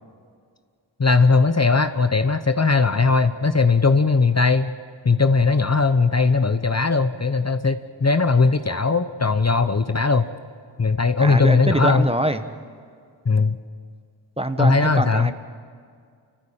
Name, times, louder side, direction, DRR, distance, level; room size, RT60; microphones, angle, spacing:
voice 1, 1.0-4.7 5.0-10.3 10.8-12.1 13.3-13.6 14.6-15.3, left 4 dB, 35° left, 10 dB, 0.8 m, -19 dB
voice 2, 11.2-12.4 14.4-15.3, right 1 dB, 10° right, 9 dB, 1.1 m, -24 dB
28.5 x 15.0 x 8.7 m, 2.2 s
wide cardioid pair, 65°, 46 cm